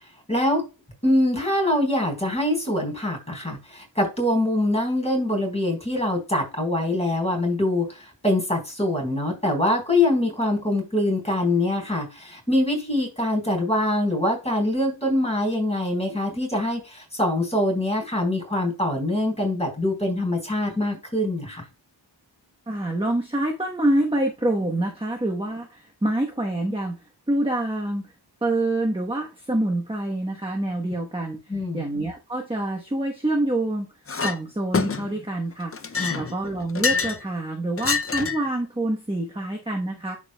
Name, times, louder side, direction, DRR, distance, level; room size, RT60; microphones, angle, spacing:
voice 1, 0.3-0.6 1.0-21.6 31.5-31.8 35.9-36.3, left 1 dB, 15° left, 4.3 m, -24 dB
voice 2, 22.7-28.1 28.4-31.4 31.7-33.9 34.2-40.2, right 1 dB, 10° right, 1.1 m, -26 dB
Chink clink, 34.1-34.4 34.7-35.2 35.7-37.2 37.8-38.5, left 5 dB, 30° left, 0.5 m, -26 dB
11.0 x 4.8 x 2.3 m
wide cardioid pair, 65°, 44 cm